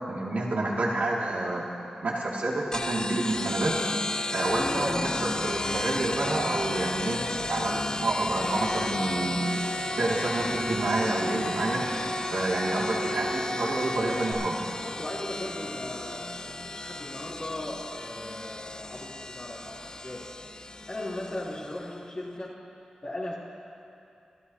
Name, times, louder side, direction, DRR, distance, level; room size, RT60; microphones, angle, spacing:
voice 1, 0.1-1.6 2.0-3.7 4.3-9.6 10.0-11.8 12.3-14.6, right 2 dB, 85° right, -4 dB, 2.1 m, -28 dB
sound 1, 2.7-21.9, left 2 dB, 30° left, 0.3 m, -34 dB
sound 2, 8.3-14.3, equal, 90° left, 2.3 m, -34 dB
voice 2, 14.7-20.3 20.9-22.6 23.0-23.4, left 1 dB, 50° left, -7 dB, 3.0 m, -38 dB
26.0 x 13.0 x 2.8 m, 2.6 s
wide cardioid pair, 65°, 3 cm